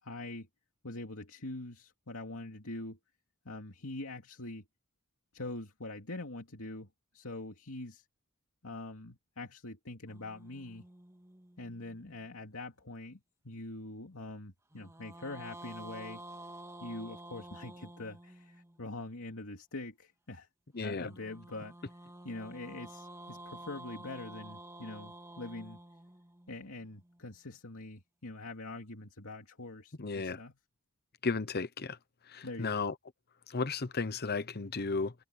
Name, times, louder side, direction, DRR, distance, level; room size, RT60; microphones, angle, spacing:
voice 1, 0.0-0.5 0.8-3.0 3.4-4.6 5.3-6.9 7.1-8.0 8.6-10.8 11.6-16.2 16.8-20.5 20.8-21.7 22.2-25.8 26.5-30.6 32.4-32.8, left 2 dB, 90° left, 2.6 m, -44 dB
sound 1, 10.1-12.5 14.7-18.9 21.0-27.2, right 1 dB, 15° right, 1.9 m, -50 dB
voice 2, 20.7-21.1 30.0-30.4 31.2-32.0 32.3-32.9 33.5-35.1, left 4 dB, 50° left, 1.0 m, -34 dB
head